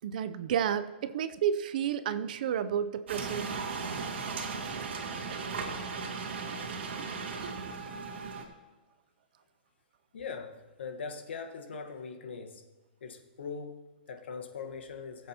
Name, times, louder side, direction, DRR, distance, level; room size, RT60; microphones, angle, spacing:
voice 1, 0.0-3.6 5.3-5.5 7.0-7.1 7.4-7.5, right 9 dB, 50° right, 12 dB, 0.5 m, -31 dB
sound 1, 3.1-8.4, right 4 dB, 80° right, 2.0 m, -37 dB
voice 2, 10.1-12.7 13.0-15.3, left 5 dB, 80° left, 4 dB, 1.4 m, -41 dB
20.0 x 7.8 x 2.9 m, 1.2 s
hypercardioid pair, 165°, 6 cm